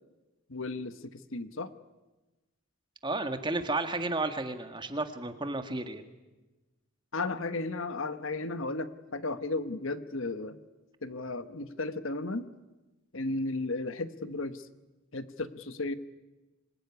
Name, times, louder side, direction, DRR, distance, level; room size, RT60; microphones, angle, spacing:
voice 1, 0.5-1.7 7.1-10.6 11.0-12.5 13.1-14.7 15.1-15.9, left 2 dB, 60° left, 12 dB, 1.2 m, -34 dB
voice 2, 3.0-6.0, right 2 dB, 20° right, 7 dB, 1.7 m, -32 dB
26.0 x 21.5 x 9.7 m, 1.1 s
head